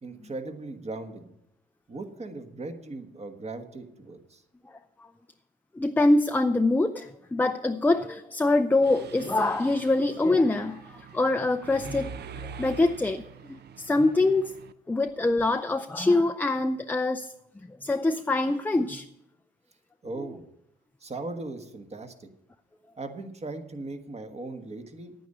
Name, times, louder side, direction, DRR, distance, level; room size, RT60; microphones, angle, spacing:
voice 1, 0.0-1.3 1.9-4.4 20.0-20.5 21.0-22.3 23.0-25.1, right 2 dB, 35° right, 7 dB, 1.4 m, -38 dB
voice 2, 5.8-13.2 13.5-14.5 14.9-17.3 17.8-19.1, left 2 dB, 10° left, 7 dB, 0.4 m, -24 dB
Mechanisms, 8.8-14.7, right 7 dB, 55° right, 0.6 m, -44 dB
9.6 x 9.2 x 6.6 m, 0.81 s
cardioid pair, 90°, 20 cm